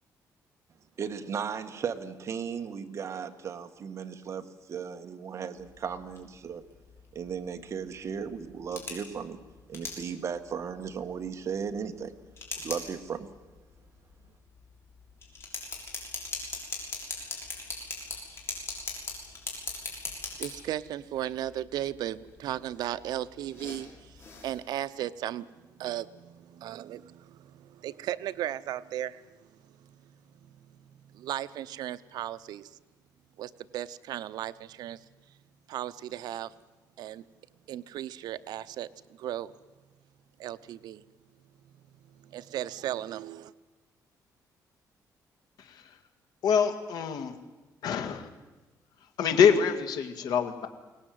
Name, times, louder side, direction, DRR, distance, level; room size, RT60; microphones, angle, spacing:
voice 1, 1.0-6.6 7.1-9.4 9.7-12.1 12.6-13.3, right 7 dB, 45° right, 7 dB, 1.6 m, -36 dB
sound 1, 5.6-24.6, left 4 dB, 35° left, 6.4 m, -42 dB
voice 2, 20.4-30.1 31.1-32.7 33.4-35.0 35.7-36.5 37.0-37.2 37.7-39.5 40.4-41.0 42.1-43.5, right 12 dB, 85° right, 14 dB, 0.8 m, -36 dB
voice 3, 46.4-47.3 47.8-48.3 49.2-50.7, left 7 dB, 80° left, 7 dB, 2.1 m, -25 dB
23.0 x 18.5 x 9.4 m, 1.2 s
cardioid pair, 135°, 7 cm